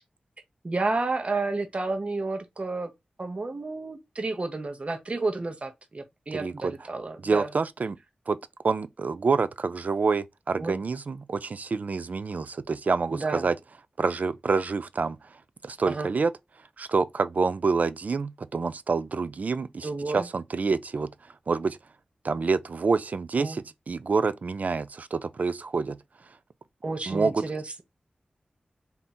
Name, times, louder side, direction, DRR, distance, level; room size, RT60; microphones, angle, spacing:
voice 1, 0.6-2.9 3.2-7.5 10.6-10.8 13.1-13.5 15.9-16.1 19.8-20.3 23.4-23.6 26.8-27.8, right 3 dB, 45° right, 0.9 m, -31 dB
voice 2, 6.3-6.7 7.2-8.0 8.3-8.4 8.6-13.6 14.0-15.2 15.6-16.3 16.8-21.1 21.5-21.8 22.2-26.0 27.1-27.4, right 4 dB, 60° right, 0.4 m, -27 dB
3.6 x 2.7 x 4.2 m
wide cardioid pair, 80°, 3 cm